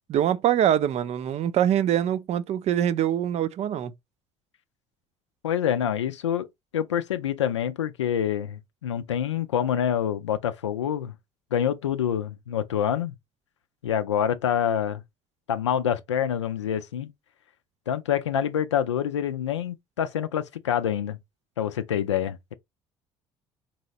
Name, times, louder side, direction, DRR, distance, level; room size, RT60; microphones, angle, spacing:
voice 1, 0.1-3.9, right 10 dB, 45° right, 0.4 m, -24 dB
voice 2, 5.4-6.5 6.7-11.1 11.5-13.1 13.8-15.0 15.5-17.1 17.9-21.2 21.6-22.5, left 9 dB, 85° left, 0.4 m, -26 dB
4.0 x 3.0 x 2.7 m
figure-of-eight pair, 55°, 15 cm